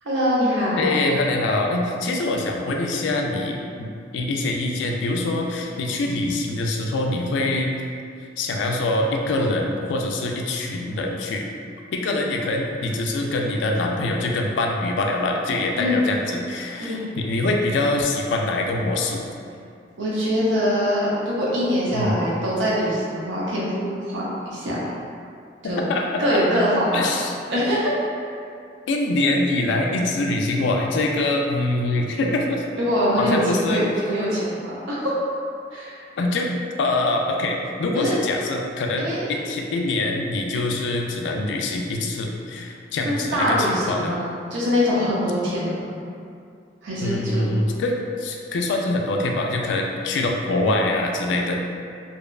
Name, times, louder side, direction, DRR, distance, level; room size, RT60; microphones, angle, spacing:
voice 1, 0.0-1.0 15.8-16.1 16.8-17.0 20.0-24.8 25.6-25.9 26.2-27.1 27.5-27.9 28.2-28.4 32.7-35.1 35.7-36.1 37.9-38.2 39.0-39.3 43.0-45.9 46.8-47.5, equal, 90° right, -6 dB, 0.5 m, -23 dB
voice 2, 0.7-7.7 8.2-11.5 11.9-19.2 21.9-22.2 25.6-26.6 26.9-27.3 28.9-32.6 33.2-33.8 36.2-36.5 36.8-44.1 47.0-51.6, left 2 dB, 80° left, 1 dB, 0.3 m, -24 dB
2.6 x 2.1 x 2.2 m, 2.4 s
head